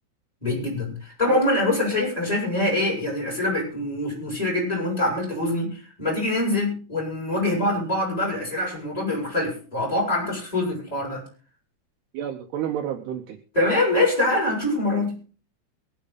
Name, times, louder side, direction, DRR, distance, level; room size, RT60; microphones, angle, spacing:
voice 1, 0.4-11.2 13.5-15.1, left 2 dB, 5° left, -4 dB, 6.8 m, -24 dB
voice 2, 1.3-1.8 12.1-13.4, right 10 dB, 80° right, 6 dB, 2.4 m, -31 dB
23.5 x 8.5 x 4.0 m, 0.39 s
omnidirectional pair, 5.9 m